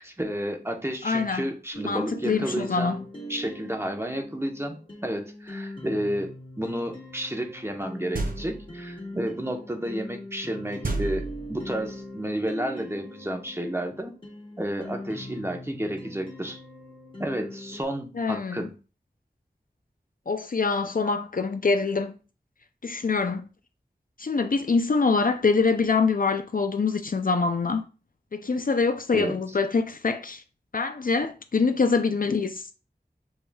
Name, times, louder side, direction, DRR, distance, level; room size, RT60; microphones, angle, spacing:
voice 1, 0.0-3.0 3.3-14.1 14.6-16.6 17.2-18.7 29.1-29.4, right 1 dB, 15° right, 0.9 m, -31 dB
voice 2, 1.0-1.4 1.8-3.0 18.1-18.7 20.3-22.2 22.8-23.5 24.2-27.9 28.3-30.4 30.7-32.7, left 4 dB, 55° left, 0.4 m, -25 dB
sound 1, 1.7-17.8, left 1 dB, 30° left, 1.9 m, -41 dB
sound 2, 8.1-8.8 10.8-11.8, right 3 dB, 55° right, 0.6 m, -31 dB
7.2 x 3.1 x 2.3 m
wide cardioid pair, 55°, 18 cm